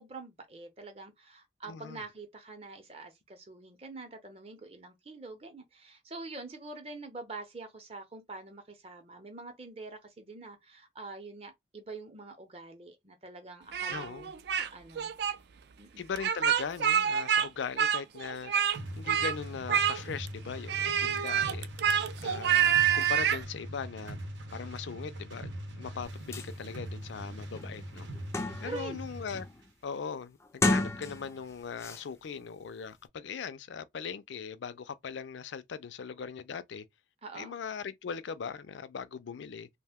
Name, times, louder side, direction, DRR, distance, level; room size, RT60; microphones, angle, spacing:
voice 1, 0.0-14.2 14.5-15.1 15.8-16.0 28.4-29.0 37.2-37.5, right 3 dB, 35° right, 0.7 m, -45 dB
voice 2, 1.6-2.0 13.9-14.3 16.0-21.7 22.2-24.2 24.5-28.1 28.6-29.5 29.8-36.8 37.3-39.7, left 6 dB, 80° left, 0.4 m, -40 dB
Speech, 13.7-14.7 15.0-15.3 16.2-17.5 17.8-18.8 19.1-19.4 19.7-20.3 20.7-23.4, right 9 dB, 65° right, 0.3 m, -27 dB
sound 1, 18.7-29.5, right 1 dB, 90° right, 0.8 m, -42 dB
sound 2, 26.0-26.1 26.3-26.5 27.0-27.1 27.5-28.9 29.3-29.6 30.4-31.4 31.8-32.0, left 2 dB, 15° left, 0.3 m, -32 dB
2.5 x 2.1 x 3.5 m
head